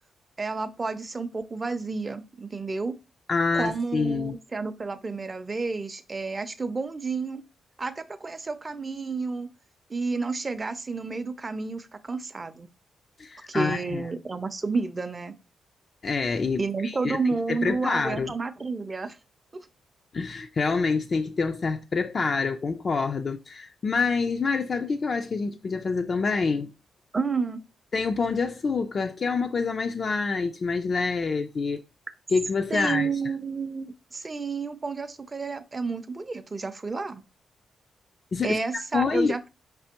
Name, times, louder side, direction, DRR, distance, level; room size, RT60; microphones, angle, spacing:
voice 1, 0.4-3.0 3.5-7.4 7.8-9.5 9.9-12.7 13.5-15.3 16.6-19.2 19.5-19.7 27.1-27.6 32.7-37.2 38.4-39.5, right 4 dB, 25° right, 0.5 m, -30 dB
voice 2, 3.3-4.4 13.2-14.0 16.0-17.2 17.5-18.3 20.1-26.7 27.9-31.8 32.3-33.1 38.3-38.6 38.9-39.3, left 4 dB, 45° left, 0.3 m, -26 dB
4.9 x 3.3 x 2.8 m
cardioid pair, 110°, 0 cm